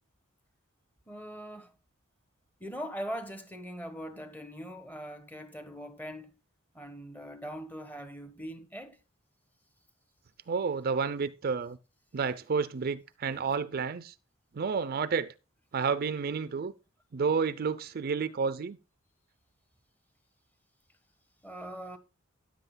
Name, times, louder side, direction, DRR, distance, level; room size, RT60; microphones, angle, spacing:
voice 1, 1.1-1.7 2.6-6.3 6.7-9.0 21.4-22.0, equal, 10° left, 1.3 m, -41 dB
voice 2, 10.5-11.8 12.1-14.1 14.5-15.3 15.7-16.7 17.1-18.8, right 5 dB, 45° right, 0.5 m, -30 dB
13.5 x 10.0 x 2.2 m
head